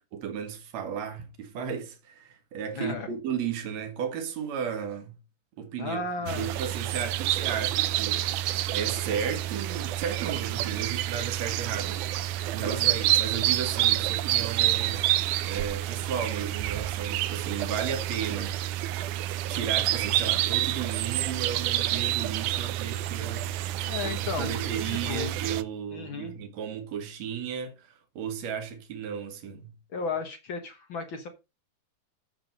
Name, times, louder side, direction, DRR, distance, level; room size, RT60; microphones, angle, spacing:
voice 1, 0.1-5.2 5.6-15.1 15.4-19.2 19.5-23.5 24.0-27.9 28.2-29.7, right 7 dB, 65° right, 2.8 m, -34 dB
voice 2, 2.7-3.1 5.8-6.6 12.6-13.0 23.8-24.5 24.9-25.3 25.9-26.3 29.9-31.3, left 5 dB, 50° left, 1.7 m, -34 dB
sound 1, 6.3-25.6, right 14 dB, 85° right, 2.2 m, -28 dB
7.7 x 7.2 x 5.1 m
omnidirectional pair, 3.4 m